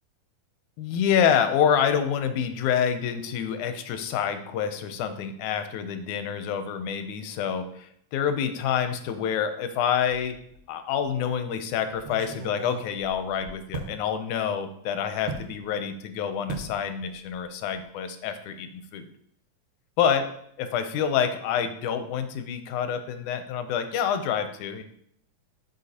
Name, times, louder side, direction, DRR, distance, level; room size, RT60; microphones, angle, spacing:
voice 1, 0.8-10.4 10.7-19.1 20.0-20.2 20.6-24.8, left 8 dB, 80° left, 9 dB, 2.1 m, -27 dB
sound 1, 10.5-10.6 11.0-11.1 11.9-14.0 15.3-15.5 16.5-16.8 17.1-17.4 17.7-17.8, right 3 dB, 75° right, 2.5 m, -38 dB
12.0 x 5.2 x 2.8 m, 0.70 s
omnidirectional pair, 3.5 m